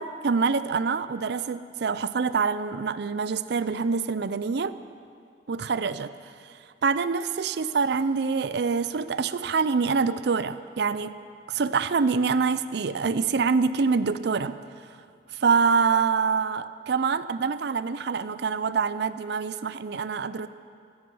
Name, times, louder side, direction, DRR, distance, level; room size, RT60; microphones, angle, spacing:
voice 1, 0.0-4.8 5.5-6.1 6.5-11.1 11.5-14.6 15.3-20.5, right 5 dB, 65° right, 14 dB, 0.5 m, -25 dB
16.0 x 13.5 x 5.5 m, 2.2 s
head